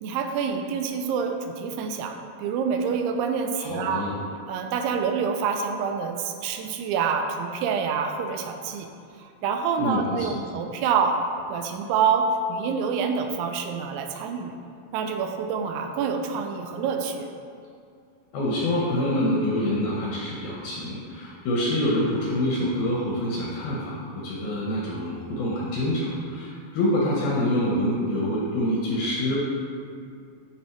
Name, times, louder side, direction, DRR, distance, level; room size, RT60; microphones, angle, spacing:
voice 1, 0.0-2.1 2.4-4.0 4.5-8.9 9.2-11.2 11.5-14.6 14.9-17.3, right 6 dB, 90° right, 5 dB, 3.0 m, -27 dB
voice 2, 3.6-4.2 9.8-10.3 18.3-29.4, left 1 dB, 70° left, -5 dB, 2.4 m, -26 dB
12.0 x 4.3 x 4.6 m, 2.3 s
omnidirectional pair, 5.3 m